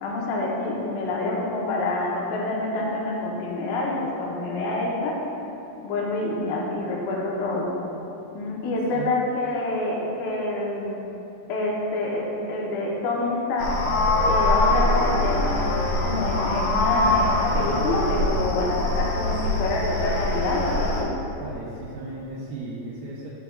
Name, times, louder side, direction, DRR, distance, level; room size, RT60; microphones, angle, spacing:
voice 1, 0.0-5.2 5.8-7.7 8.3-11.0 11.5-13.8 14.3-15.6 16.0-21.1, left 2 dB, 85° left, -3 dB, 2.7 m, -27 dB
sound 1, 13.6-21.0, left 1 dB, 65° left, 2.4 m, -23 dB
voice 2, 21.4-23.3, right 3 dB, 80° right, -5 dB, 2.3 m, -36 dB
11.5 x 5.7 x 2.4 m, 2.9 s
omnidirectional pair, 4.1 m